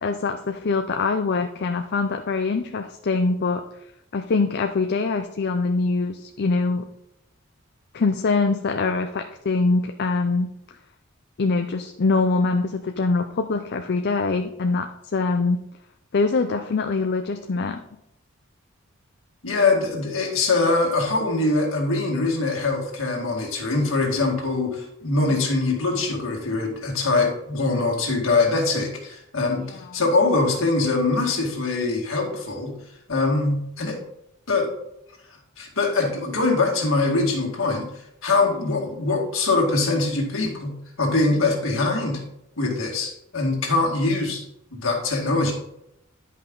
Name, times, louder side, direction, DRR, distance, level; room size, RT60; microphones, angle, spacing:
voice 1, 0.0-3.6 4.1-6.8 7.9-10.5 11.4-14.9 15.1-15.6 16.1-17.8 29.6-29.8 38.6-38.7, left 3 dB, 55° left, 6 dB, 0.5 m, -23 dB
voice 2, 19.4-32.7 33.1-34.0 34.5-34.7 35.6-37.9 38.2-42.2 42.6-44.4 44.7-45.5, left 3 dB, 70° left, 0 dB, 2.2 m, -23 dB
10.5 x 5.5 x 3.8 m, 0.80 s
head